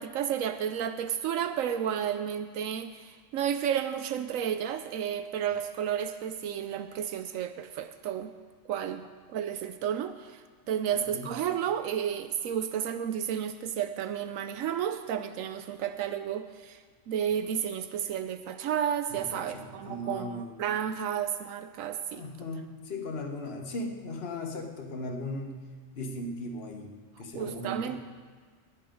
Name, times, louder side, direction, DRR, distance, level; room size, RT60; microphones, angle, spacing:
voice 1, 0.0-8.3 8.6-22.3 27.3-28.0, right 9 dB, 85° right, 10 dB, 1.0 m, -32 dB
voice 2, 10.9-11.3 19.1-20.5 22.1-28.0, left 1 dB, 50° left, 2 dB, 1.5 m, -38 dB
19.5 x 8.6 x 5.2 m, 1.6 s
omnidirectional pair, 1.4 m